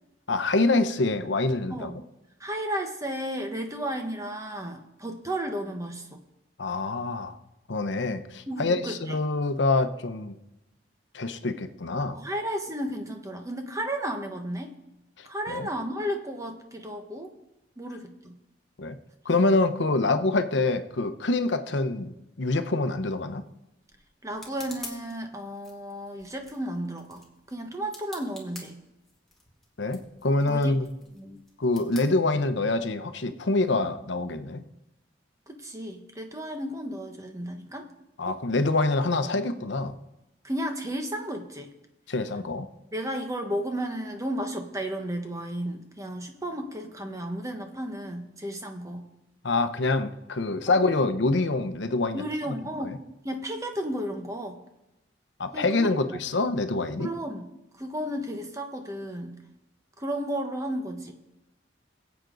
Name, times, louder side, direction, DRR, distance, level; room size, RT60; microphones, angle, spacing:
voice 1, 0.3-1.9 6.6-7.4 7.7-10.4 11.1-12.2 15.2-15.7 18.8-19.0 19.2-23.4 29.8-30.9 31.6-34.6 38.2-40.0 42.1-42.7 49.4-52.2 52.8-53.0 55.4-57.1, left 2 dB, 75° left, 9 dB, 0.9 m, -26 dB
voice 2, 1.7-2.0 2.4-6.2 8.5-9.2 12.1-14.8 15.2-17.3 17.8-18.4 24.2-28.8 30.5-31.4 35.5-37.9 38.3-38.4 40.4-41.7 42.9-49.0 52.1-54.6 55.5-56.0 57.0-57.5 57.8-59.4 60.0-61.1, right 1 dB, 15° right, 4 dB, 1.2 m, -33 dB
sound 1, 23.1-32.9, left 2 dB, ahead, 2.0 m, -49 dB
22.0 x 8.1 x 4.0 m, 0.93 s
head